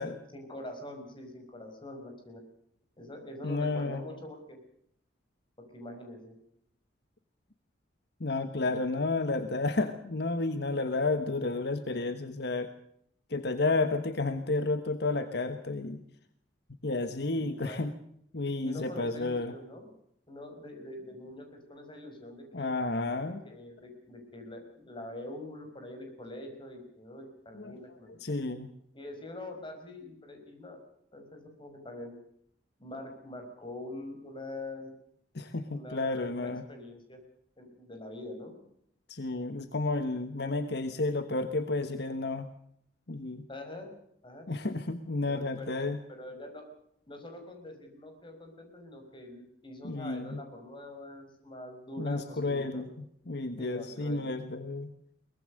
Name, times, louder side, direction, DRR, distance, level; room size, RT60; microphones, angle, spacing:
voice 1, 0.0-2.4 3.0-4.6 5.6-6.4 17.3-17.8 18.6-19.9 20.3-22.7 23.4-28.4 28.9-30.8 31.1-32.1 32.8-34.9 35.7-37.2 37.6-38.5 43.5-43.9 44.2-44.4 45.3-46.7 47.1-52.8 53.6-54.3, left 1 dB, 30° left, 4 dB, 5.7 m, -44 dB
voice 2, 3.4-4.0 8.2-12.7 13.3-16.0 16.8-17.9 18.3-19.5 22.5-23.4 27.6-27.7 28.2-28.7 35.3-36.6 39.1-42.5 43.1-43.4 44.5-46.0 49.8-50.4 52.0-52.9 53.3-54.9, left 3 dB, 65° left, 9 dB, 1.3 m, -31 dB
23.0 x 19.5 x 6.5 m, 0.70 s
head